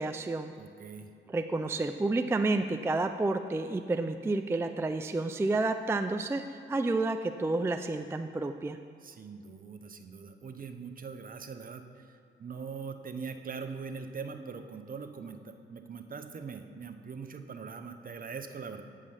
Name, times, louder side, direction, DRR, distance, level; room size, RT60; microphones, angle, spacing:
voice 1, 0.0-0.5 1.3-8.8, right 2 dB, 10° right, 7 dB, 0.3 m, -30 dB
voice 2, 0.6-1.1 9.0-18.8, right 5 dB, 45° right, 7 dB, 0.7 m, -42 dB
8.6 x 4.9 x 5.5 m, 2.4 s
cardioid pair, 60°, 21 cm